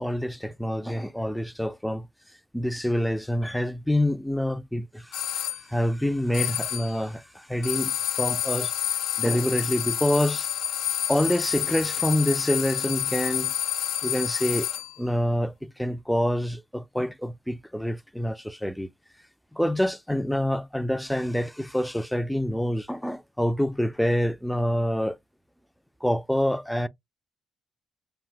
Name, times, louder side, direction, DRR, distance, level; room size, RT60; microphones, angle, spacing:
voice 1, 0.0-2.1 2.5-8.7 9.2-10.5 11.1-13.5 14.0-14.7 15.0-18.9 19.5-25.2 26.0-26.9, equal, 5° left, 0.3 m, -27 dB
sound 1, 5.1-5.6 6.3-7.0 7.6-15.0, left 10 dB, 85° left, 0.5 m, -29 dB
3.2 x 2.6 x 2.4 m
cardioid pair, 90°, 0 cm